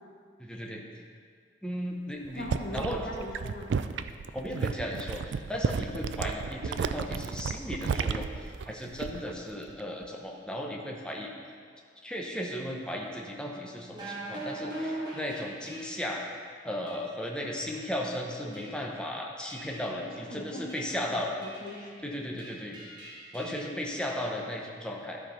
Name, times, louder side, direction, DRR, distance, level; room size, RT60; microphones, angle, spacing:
voice 1, 0.4-0.8 1.6-2.5 2.7-3.0 4.3-11.3 12.0-16.2 16.6-21.3 22.0-22.8 23.3-25.2, equal, 5° left, -1 dB, 0.8 m, -35 dB
voice 2, 2.3-3.7 20.0-22.2, left 1 dB, 50° left, -1 dB, 1.1 m, -41 dB
sound 1, 2.3-9.4 9.7-10.1, right 5 dB, 90° right, 0.4 m, -33 dB
sound 2, 13.9-16.2 16.9-17.1 17.6-18.1 18.5-19.0 19.5-20.1 20.7-21.0 21.4-22.0 22.4-23.7, right 1 dB, 25° right, 2.2 m, -41 dB
12.0 x 4.6 x 5.5 m, 2.1 s
head